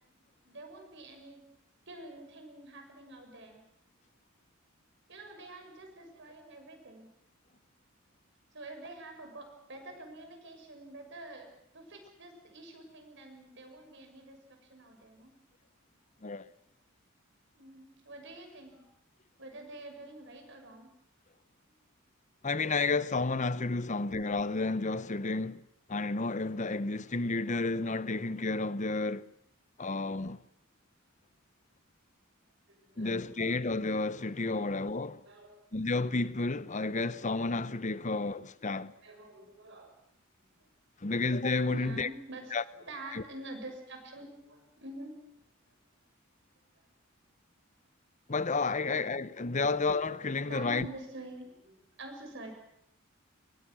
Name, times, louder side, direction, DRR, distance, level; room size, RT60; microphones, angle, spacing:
voice 1, 0.1-1.4 1.9-3.6 5.1-7.1 8.5-11.5 11.7-15.3 17.5-18.9 19.4-20.9 32.7-33.2 34.5-34.7 35.2-35.6 39.0-39.9 40.6-40.7 41.7-45.2 48.8-48.9 50.5-52.5, right 2 dB, 60° right, 6.4 m, -47 dB
voice 2, 22.4-25.6 25.9-29.2 29.8-30.4 33.0-35.2 35.7-38.9 41.0-42.1 42.5-42.6 43.1-43.2 48.3-50.9, left 3 dB, 35° left, 0.8 m, -31 dB
28.5 x 23.0 x 6.3 m
head